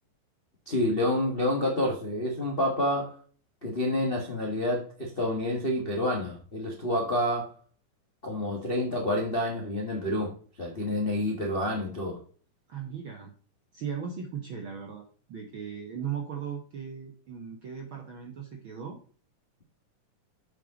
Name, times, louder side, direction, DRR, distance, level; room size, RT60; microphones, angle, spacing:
voice 1, 0.6-3.2 3.6-7.5 8.2-12.2, left 1 dB, 40° left, -1 dB, 0.8 m, -28 dB
voice 2, 12.7-13.3 13.7-19.0, right 7 dB, 65° right, 2 dB, 1.3 m, -37 dB
8.7 x 5.5 x 3.8 m, 0.43 s
omnidirectional pair, 3.7 m